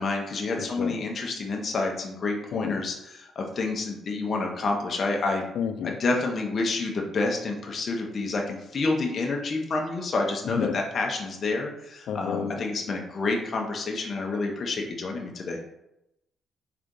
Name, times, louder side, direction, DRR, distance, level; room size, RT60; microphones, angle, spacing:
voice 1, 0.0-5.4 5.8-15.6, left 3 dB, 45° left, 1 dB, 0.8 m, -29 dB
voice 2, 0.6-0.9 2.5-2.7 5.6-6.0 10.6-10.7 12.1-12.6, left 7 dB, 75° left, 10 dB, 0.4 m, -30 dB
3.7 x 3.4 x 3.8 m, 0.85 s
cardioid pair, 90°, 0 cm